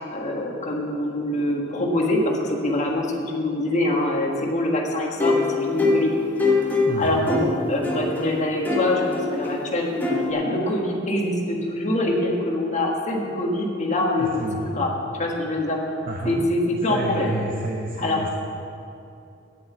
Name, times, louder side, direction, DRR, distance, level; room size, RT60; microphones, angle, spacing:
voice 1, 0.1-6.2 6.4-14.9 15.2-15.8 16.2-17.3 18.0-18.3, left 1 dB, 35° left, -1 dB, 1.6 m, -24 dB
sound 1, 5.2-8.2 8.7-9.5 10.0-10.3, left 3 dB, 10° left, 1.2 m, -23 dB
voice 2, 6.9-7.3 14.2-14.8 16.0-16.5 16.9-18.3, right 2 dB, 45° right, 0 dB, 0.8 m, -30 dB
8.8 x 7.6 x 8.4 m, 2.6 s
head